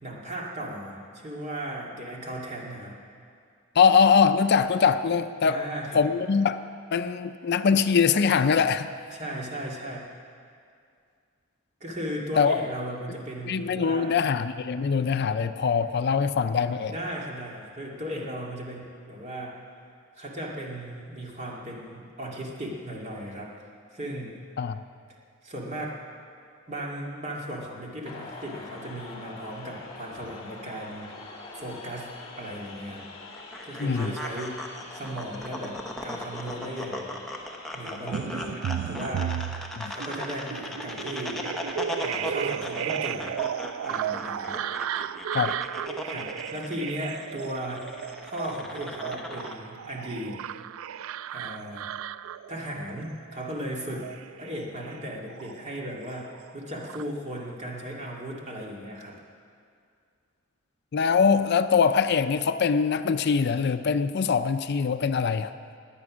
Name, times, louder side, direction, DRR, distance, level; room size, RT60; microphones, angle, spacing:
voice 1, 0.0-2.9 5.4-6.0 9.1-10.1 11.8-14.2 16.9-19.6 20.1-23.7 23.9-24.4 25.4-26.0 26.7-31.1 31.5-33.1 33.6-34.6 34.9-37.2 37.7-39.4 39.9-41.4 42.0-43.4 43.8-44.5 46.0-47.9 48.2-50.4 51.3-51.9 52.5-54.1 54.4-59.2, equal, 35° right, -2 dB, 2.3 m, -36 dB
voice 2, 3.8-5.6 5.9-6.6 6.9-8.9 12.4-12.6 13.5-16.9 24.6-24.8 33.8-34.1 39.8-39.9 45.3-45.5 60.9-65.5, left 6 dB, 55° left, 11 dB, 0.4 m, -22 dB
sound 1, 28.1-42.3, left 3 dB, 30° left, 2.0 m, -46 dB
sound 2, 33.3-49.5, left 1 dB, ahead, 1.0 m, -38 dB
sound 3, 38.1-55.9 56.2-57.0, right 9 dB, 80° right, 0.3 m, -34 dB
21.0 x 8.5 x 6.2 m, 2.3 s
head